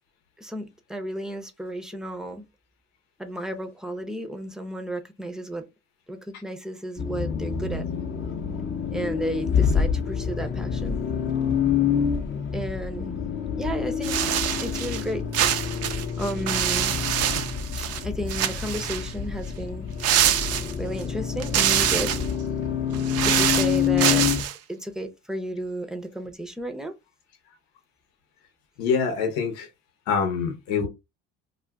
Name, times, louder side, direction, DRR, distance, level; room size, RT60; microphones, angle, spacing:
voice 1, 0.4-2.4 3.2-5.7 6.1-7.9 8.9-11.0 12.5-13.2 13.6-14.3 14.6-15.3 16.2-17.0 17.8-19.9 20.8-22.1 23.2-24.2 24.7-26.9, right 1 dB, ahead, 0.6 m, -33 dB
Accelerating revving vroom, 7.0-24.4, left 7 dB, 40° left, 0.7 m, -27 dB
sound 1, 14.0-15.0 15.3-18.0 18.3-19.1 20.0-21.0 21.4-22.3 22.9-24.5, right 11 dB, 50° right, 0.5 m, -25 dB
voice 2, 28.8-29.7 30.1-30.9, left 6 dB, 85° left, 0.9 m, -25 dB
2.4 x 2.4 x 3.4 m
supercardioid pair, 90°, 32 cm